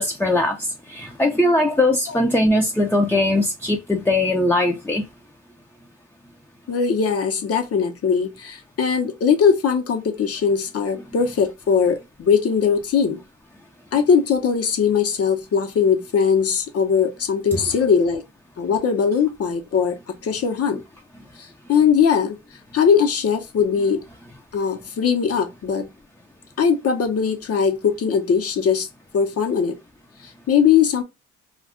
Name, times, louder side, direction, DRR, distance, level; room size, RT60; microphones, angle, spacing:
voice 1, 0.0-5.0, left 1 dB, 5° left, 0.5 m, -20 dB
voice 2, 6.7-13.2 13.9-18.2 18.6-20.8 21.4-22.4 22.7-24.0 24.5-25.9 26.6-28.9 29.1-29.8 30.2-31.0, left 6 dB, 50° left, 0.9 m, -20 dB
2.4 x 2.3 x 3.5 m
cardioid pair, 90°, 30 cm